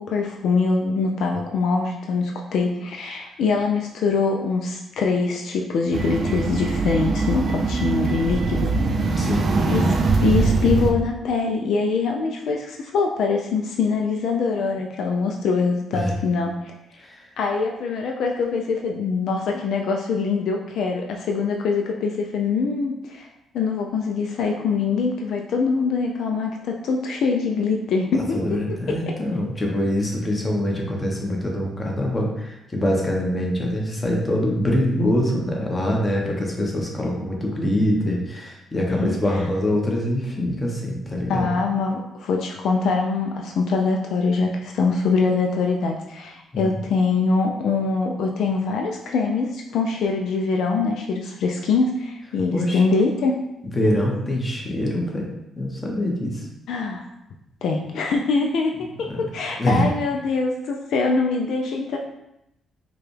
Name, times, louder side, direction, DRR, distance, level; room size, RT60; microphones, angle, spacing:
voice 1, 0.0-8.7 9.2-9.3 9.7-16.7 17.4-23.3 23.5-28.4 38.9-39.2 41.3-53.4 56.7-57.1 57.6-58.9 59.3-62.0, left 4 dB, 75° left, 1 dB, 0.4 m, -23 dB
sound 1, 5.9-10.9, right 3 dB, 50° right, 0.4 m, -22 dB
voice 2, 9.2-10.0 15.9-16.1 17.0-17.2 28.3-41.5 46.5-46.7 52.5-52.8 53.7-56.5 59.1-59.2 59.6-59.9, left 1 dB, 25° left, -1 dB, 1.0 m, -24 dB
4.7 x 2.3 x 3.2 m, 0.86 s
cardioid pair, 90°, 0 cm